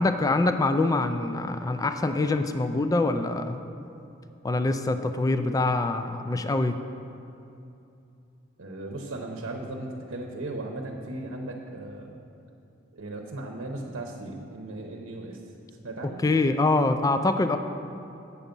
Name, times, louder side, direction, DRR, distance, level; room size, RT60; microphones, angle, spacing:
voice 1, 0.0-3.6 4.4-6.8 16.2-17.6, left 2 dB, 20° left, 9 dB, 0.3 m, -24 dB
voice 2, 8.6-12.1 12.9-15.4 15.8-16.2, right 2 dB, 75° right, 1 dB, 0.8 m, -36 dB
8.3 x 7.0 x 5.2 m, 2.7 s
head